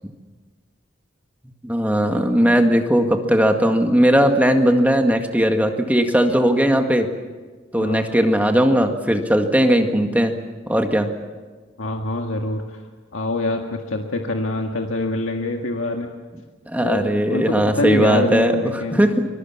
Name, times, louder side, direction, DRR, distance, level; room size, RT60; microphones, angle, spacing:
voice 1, 1.6-7.1 7.7-10.3 10.7-11.1 16.7-19.2, equal, 10° right, 4 dB, 1.9 m, -18 dB
voice 2, 7.8-8.1 11.8-12.8 13.1-16.1 16.8-19.0, left 2 dB, 85° left, 2 dB, 1.7 m, -25 dB
25.0 x 21.0 x 7.3 m, 1.4 s
head